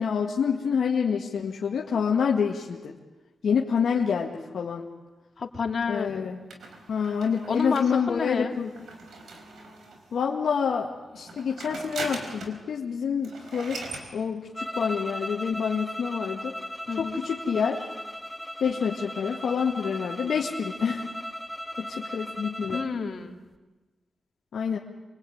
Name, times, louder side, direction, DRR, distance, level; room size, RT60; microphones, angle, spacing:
voice 1, 0.0-2.9 3.4-4.9 5.9-6.4 6.9-8.7 10.1-13.8 14.1-16.6 17.0-17.9 18.6-21.1 21.8-22.8 24.5-24.8, left 6 dB, 80° left, 0 dB, 1.8 m, -27 dB
voice 2, 5.4-6.2 7.5-8.5 16.9-17.2 22.7-23.3, left 5 dB, 60° left, 3 dB, 3.0 m, -30 dB
sound 1, 6.5-10.1 11.1-12.6 12.9-13.0 13.2-14.1, right 3 dB, 85° right, 4.8 m, -40 dB
sound 2, 14.5-23.0, equal, 5° left, 1.9 m, -37 dB
27.5 x 23.5 x 9.4 m, 1.2 s
cardioid pair, 60°, 0 cm